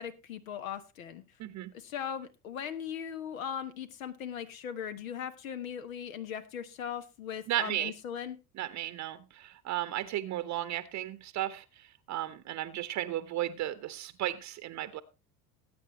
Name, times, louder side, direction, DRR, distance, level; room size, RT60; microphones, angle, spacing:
voice 1, 0.0-1.2 1.7-8.4, left 8 dB, 70° left, 10 dB, 1.2 m, -39 dB
voice 2, 1.4-1.7 7.5-7.9 8.6-15.0, right 13 dB, 40° right, 13 dB, 0.9 m, -35 dB
19.0 x 8.8 x 3.0 m, 0.29 s
figure-of-eight pair, 65°, 43 cm